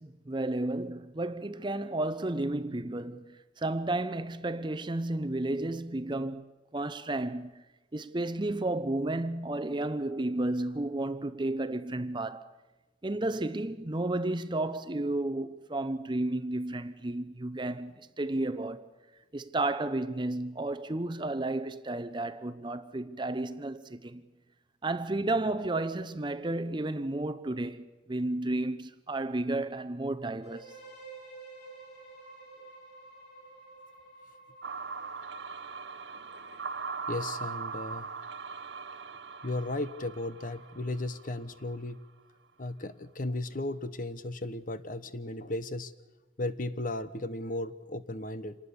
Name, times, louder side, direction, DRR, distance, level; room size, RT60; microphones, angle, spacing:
voice 1, 0.0-6.5 6.7-7.6 7.9-12.5 13.0-18.9 19.3-24.2 24.8-30.7, right 2 dB, 25° right, 0.7 m, -32 dB
sound 1, 30.4-38.2, right 3 dB, 65° left, 5.6 m, -51 dB
sound 2, 34.6-41.8, right 5 dB, 70° right, 0.8 m, -40 dB
voice 2, 37.1-38.1 39.4-42.0 42.6-45.9 46.4-48.6, left 2 dB, 45° left, 0.9 m, -35 dB
26.5 x 19.5 x 6.9 m
head